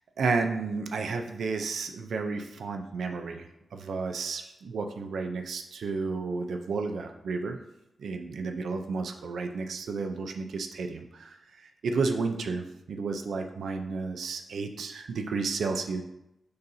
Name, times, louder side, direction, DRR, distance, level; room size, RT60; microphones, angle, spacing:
voice 1, 0.2-7.6 8.0-11.4 11.6-16.0, right 4 dB, 90° right, 5 dB, 0.5 m, -32 dB
6.7 x 2.7 x 5.5 m, 0.86 s
wide cardioid pair, 150°, 0 cm